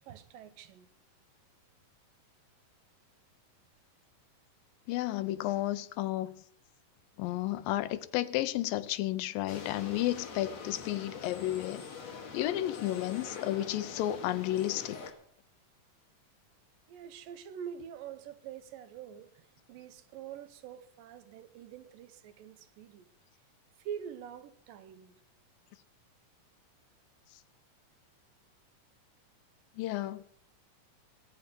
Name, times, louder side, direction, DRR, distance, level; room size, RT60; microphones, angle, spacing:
voice 1, 0.1-0.9 16.9-19.3 19.7-23.1 23.9-25.1, right 9 dB, 80° right, 2.5 m, -45 dB
voice 2, 4.9-6.4 7.2-11.8 12.3-15.0 29.8-30.2, left 15 dB, 85° left, 2.4 m, -32 dB
sound 1, 9.5-15.1, left 5 dB, 50° left, 2.9 m, -44 dB
21.5 x 9.1 x 5.3 m
omnidirectional pair, 4.0 m